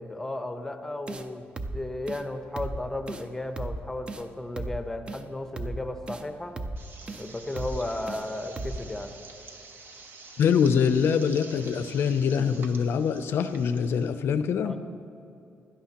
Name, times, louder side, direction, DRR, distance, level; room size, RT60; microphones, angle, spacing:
voice 1, 0.0-1.4 1.7-6.6 7.1-9.2 14.6-14.8, left 2 dB, 10° left, 7 dB, 0.7 m, -34 dB
sound 1, 1.1-1.3 1.6-1.8 2.1-2.2 2.6-2.8 3.1-3.2 3.6-3.8 4.1-4.2 4.6-4.8 5.1-5.2 5.6-5.8 6.1-6.2 6.6-6.8 7.1-7.2 7.6-7.8 8.1-8.2 8.6-8.8, right 2 dB, 25° right, 0.5 m, -35 dB
sound 2, 6.8-14.1, right 3 dB, 55° right, 1.0 m, -48 dB
voice 2, 10.4-14.8, left 7 dB, 65° left, 11 dB, 0.5 m, -24 dB
17.0 x 11.5 x 2.9 m, 2.8 s
cardioid pair, 140°, 4 cm